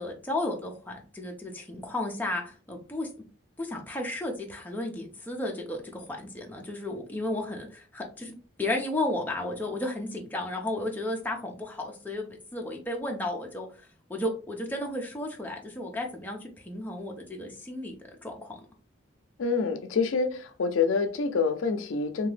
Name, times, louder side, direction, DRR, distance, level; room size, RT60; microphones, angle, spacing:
voice 1, 0.0-3.1 3.6-13.7 14.1-18.0 18.2-18.6, left 1 dB, 10° left, 0.5 m, -33 dB
voice 2, 19.4-22.3, left 4 dB, 80° left, 0.4 m, -27 dB
2.8 x 2.3 x 3.2 m
head